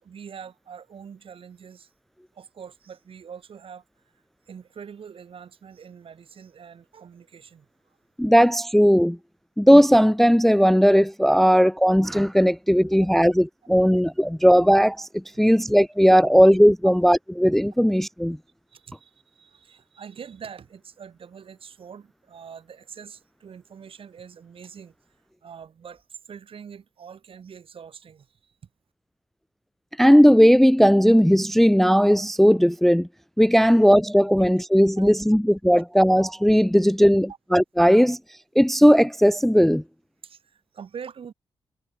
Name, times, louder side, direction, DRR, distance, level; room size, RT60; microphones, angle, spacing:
voice 1, 0.0-1.9 2.3-3.8 4.5-7.7 12.9-13.3 13.8-13.9 15.5-15.6 16.2-16.3 16.8-16.9 18.7-24.9 25.4-28.6 34.4-34.5 35.0-35.1 40.2-41.3, right 7 dB, 70° right, 3.9 m, -44 dB
voice 2, 8.2-9.2 9.6-18.4 30.0-33.1 33.4-38.2 38.6-39.8, equal, 5° left, 0.3 m, -17 dB
cardioid pair, 60°, 10 cm